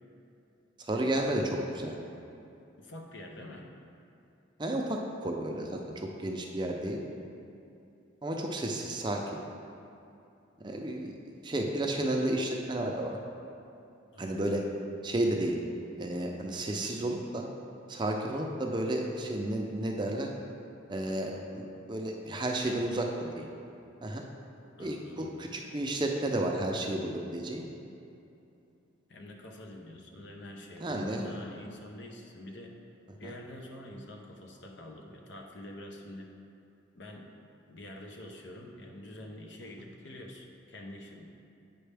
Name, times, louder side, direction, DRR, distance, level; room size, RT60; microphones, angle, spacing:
voice 1, 0.8-2.0 4.6-7.0 8.2-9.2 10.6-13.2 14.2-14.6 15.0-15.6 16.0-17.5 17.9-20.3 20.9-23.1 23.3-23.5 24.0-24.2 24.8-27.6 30.8-31.3 33.2-33.3, right 1 dB, 25° right, 1 dB, 0.5 m, -32 dB
voice 2, 2.8-3.7 14.1-14.4 22.6-23.0 24.8-25.3 29.1-32.8 33.2-36.3 36.9-37.3 37.7-41.2, left 1 dB, 65° left, 2 dB, 0.7 m, -46 dB
8.6 x 5.4 x 3.4 m, 2.7 s
head